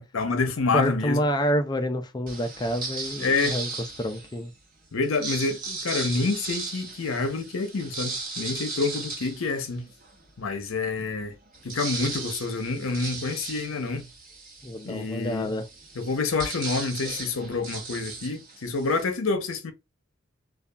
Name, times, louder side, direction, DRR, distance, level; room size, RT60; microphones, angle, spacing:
voice 1, 0.0-1.2 3.2-3.6 4.9-9.9 10.4-11.3 11.6-14.1 14.8-15.5 15.9-19.7, left 3 dB, 75° left, 0.7 m, -28 dB
voice 2, 0.7-3.7 4.0-4.5 14.6-15.7, equal, 20° left, 0.3 m, -28 dB
sound 1, 2.3-4.4 5.0-10.2 10.7-10.8 11.0-19.0, right 3 dB, 40° right, 0.9 m, -36 dB
2.7 x 2.3 x 2.2 m
head